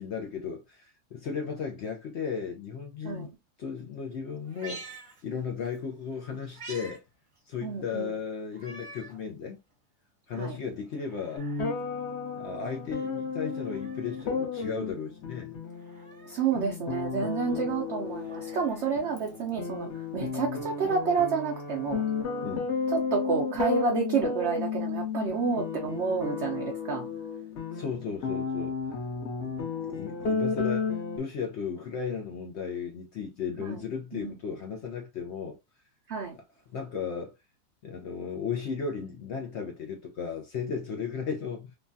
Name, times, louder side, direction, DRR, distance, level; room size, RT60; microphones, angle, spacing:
voice 1, 0.0-3.3 3.6-4.8 5.2-7.0 7.5-9.6 10.3-11.5 12.4-15.6 17.5-17.7 22.4-22.7 27.7-28.8 29.4-29.5 30.0-35.6 36.7-37.3 37.8-41.8, left 6 dB, 75° left, 0.6 m, -35 dB
Meow, 4.4-5.8 6.1-7.0 7.4-7.5 8.5-9.2 9.7-9.8 10.8-11.8 13.3-14.3 15.7-16.5 18.0-19.6 20.9-21.0, right 3 dB, 30° right, 0.6 m, -48 dB
voice 2, 7.6-8.1 10.4-10.6 16.3-19.9 20.1-22.0 22.9-27.1 33.6-33.8 34.1-34.4 36.1-36.4, right 5 dB, 70° right, 0.6 m, -29 dB
sound 1, 11.4-31.2, left 5 dB, 55° left, 0.9 m, -33 dB
3.2 x 2.2 x 2.5 m
omnidirectional pair, 1.7 m